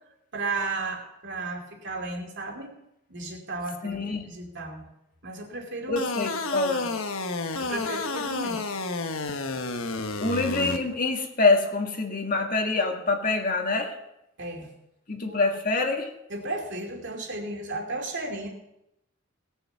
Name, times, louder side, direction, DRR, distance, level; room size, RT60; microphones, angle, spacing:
voice 1, 0.3-2.7 3.1-4.8 5.2-6.1 7.6-8.6 14.4-14.7 15.3-15.4 16.3-18.5, right 3 dB, 55° right, 2 dB, 2.7 m, -34 dB
voice 2, 3.8-4.3 5.9-7.0 10.2-13.9 15.1-16.1, left 3 dB, 40° left, 3 dB, 1.8 m, -25 dB
sound 1, 6.0-10.8, left 3 dB, 75° left, 1.2 m, -31 dB
18.0 x 7.0 x 7.1 m, 0.84 s
head